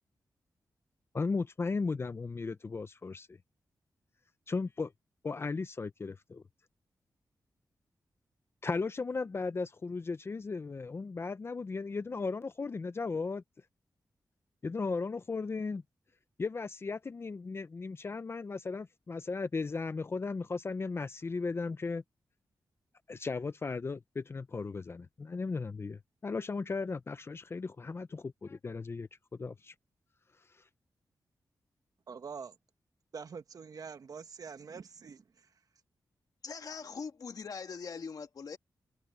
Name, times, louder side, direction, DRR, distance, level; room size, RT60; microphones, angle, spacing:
voice 1, 1.1-3.4 4.5-4.9 5.2-6.4 8.6-13.4 14.6-15.8 16.4-22.0 23.1-29.1 29.4-29.7, left 4 dB, 35° left, 0.6 m, -36 dB
voice 2, 32.1-32.5 33.1-35.5, right 5 dB, 55° right, 1.4 m, -45 dB
voice 3, 36.4-38.6, left 5 dB, 55° left, 1.5 m, -41 dB
wide cardioid pair, 120°, 7 cm